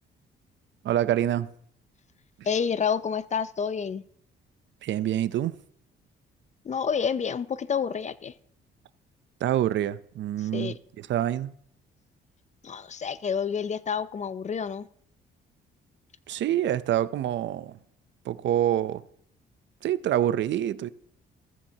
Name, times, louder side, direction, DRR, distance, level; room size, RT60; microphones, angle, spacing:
voice 1, 0.8-1.5 4.8-5.6 9.4-11.5 16.3-17.8 18.3-19.0 19.8-20.9, right 11 dB, 70° right, 0.6 m, -26 dB
voice 2, 2.4-4.0 6.6-8.3 10.4-10.8 12.6-14.9, left 6 dB, 35° left, 0.5 m, -29 dB
14.5 x 14.0 x 2.9 m
cardioid pair, 90°, 20 cm